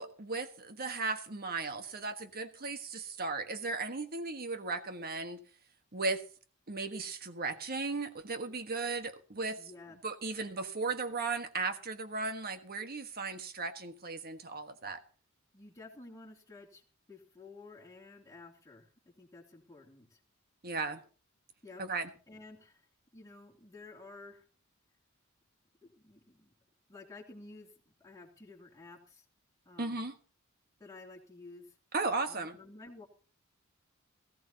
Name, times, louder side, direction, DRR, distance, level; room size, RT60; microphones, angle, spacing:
voice 1, 0.0-5.4 5.9-6.2 6.7-9.6 10.0-15.0 20.6-21.0 21.8-22.1 29.8-30.1 31.9-32.6, right 3 dB, 45° right, 1.4 m, -36 dB
voice 2, 9.6-10.0 15.5-16.8 17.1-20.2 21.6-22.9 23.1-24.4 25.8-26.5 26.9-27.7 28.0-29.2 29.6-30.0 30.8-31.7 32.3-33.1, left 3 dB, 15° left, 3.0 m, -52 dB
18.5 x 15.0 x 2.9 m
head